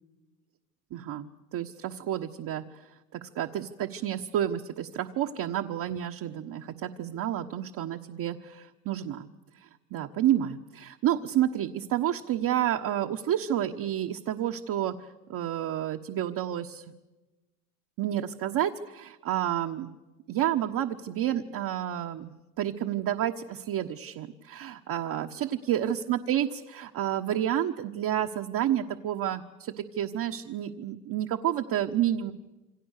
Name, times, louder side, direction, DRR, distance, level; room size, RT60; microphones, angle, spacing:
voice 1, 0.9-2.8 3.1-9.3 9.6-14.9 15.3-16.8 18.0-20.0 20.3-32.3, right 11 dB, 45° right, 2 dB, 1.4 m, -30 dB
28.0 x 25.0 x 6.7 m, 1.1 s
supercardioid pair, 95°, 46 cm